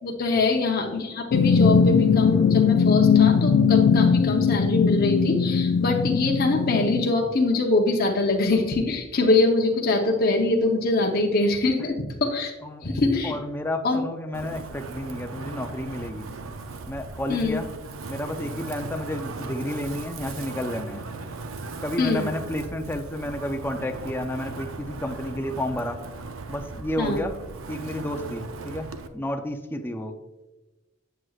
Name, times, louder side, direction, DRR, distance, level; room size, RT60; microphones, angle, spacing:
voice 1, 0.0-12.5 12.8-13.3 13.8-14.0 17.3-17.6 22.0-22.2 27.0-27.2, left 3 dB, 50° left, 0 dB, 0.8 m, -23 dB
sound 1, 1.3-7.1, left 6 dB, 85° left, 0.4 m, -20 dB
voice 2, 13.2-16.3 16.9-17.7 18.1-21.1 21.8-26.0 26.5-27.4 27.7-30.2, left 1 dB, 10° left, 5 dB, 0.5 m, -31 dB
Wind, 14.3-29.1, right 3 dB, 90° right, 0.6 m, -38 dB
8.0 x 7.6 x 2.4 m, 1.1 s
head